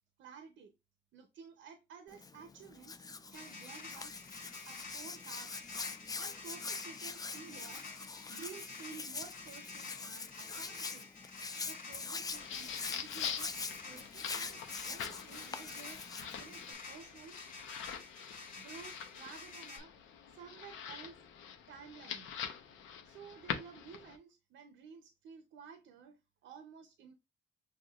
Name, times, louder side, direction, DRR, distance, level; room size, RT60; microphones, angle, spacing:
voice 1, 0.2-0.7 1.1-2.9 3.3-4.2 4.7-5.5 6.2-7.9 8.3-11.1 11.7-13.5 13.8-17.4 18.6-19.9 20.3-21.2 21.7-22.3 23.0-27.1, right 6 dB, 70° right, 0.6 m, -53 dB
Hands, 2.1-16.7, left 4 dB, 20° left, 0.4 m, -44 dB
sound 1, 3.3-19.8, left 4 dB, 45° left, 1.4 m, -50 dB
sound 2, 12.2-24.2, left 8 dB, 80° left, 0.7 m, -45 dB
6.2 x 2.3 x 2.3 m
cardioid pair, 90°, 20 cm